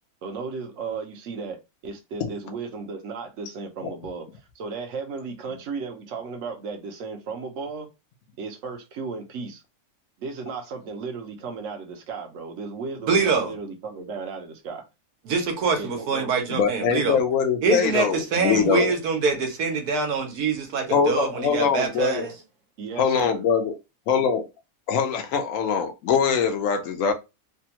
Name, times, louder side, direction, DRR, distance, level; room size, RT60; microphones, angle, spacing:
voice 1, 0.2-7.9 8.4-9.6 10.2-14.8 15.8-16.3 21.9-22.4 22.8-23.4, right 4 dB, 60° right, 1.1 m, -35 dB
voice 2, 13.1-13.5 15.2-17.2 17.6-22.3, right 5 dB, 80° right, 1.4 m, -24 dB
voice 3, 16.5-18.9 20.9-22.3 23.0-23.7 24.1-24.5 24.9-27.1, left 6 dB, 65° left, 1.1 m, -23 dB
3.4 x 2.3 x 2.8 m
omnidirectional pair, 1.6 m